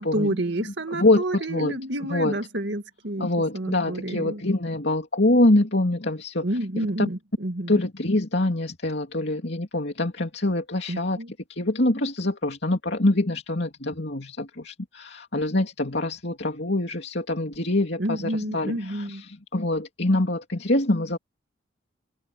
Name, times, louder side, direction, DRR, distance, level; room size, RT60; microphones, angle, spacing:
voice 1, 0.0-3.3 3.5-4.4 6.4-7.8 10.9-11.3 18.0-19.2, right 1 dB, 65° right, 2.1 m, -29 dB
voice 2, 0.9-1.8 2.1-2.3 3.2-6.5 6.8-7.1 7.7-11.2 11.5-21.2, left 2 dB, 60° left, 2.9 m, -24 dB
head